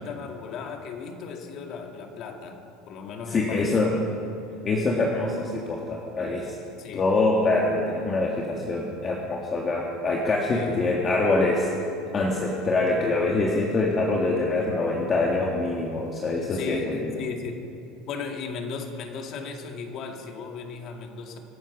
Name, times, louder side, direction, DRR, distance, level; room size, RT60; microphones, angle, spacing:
voice 1, 0.0-2.6 2.9-4.1 6.8-7.1 10.5-11.0 16.5-17.7 18.1-21.4, left 5 dB, 45° left, 3 dB, 2.2 m, -36 dB
voice 2, 3.3-3.9 4.6-6.5 6.9-11.7 12.1-17.1, left 2 dB, 25° left, -1 dB, 1.8 m, -25 dB
25.0 x 9.2 x 6.2 m, 2.8 s
supercardioid pair, 140°, 0 cm